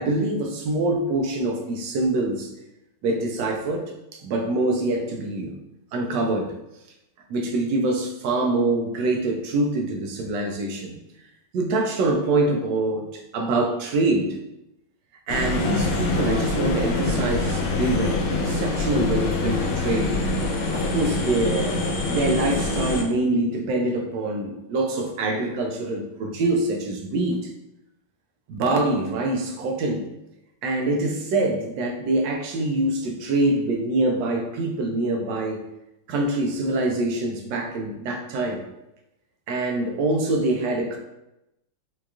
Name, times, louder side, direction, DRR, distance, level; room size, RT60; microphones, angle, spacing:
voice 1, 0.0-2.5 3.0-5.5 5.9-6.5 7.3-11.0 11.5-14.3 15.3-20.2 20.7-27.4 28.5-30.1 30.6-35.6 36.1-38.6 39.5-41.0, right 2 dB, 75° right, 3 dB, 1.1 m, -25 dB
sound 1, 15.3-23.0, left 2 dB, 90° left, 1.4 m, -25 dB
4.6 x 2.3 x 2.4 m, 0.89 s
omnidirectional pair, 2.2 m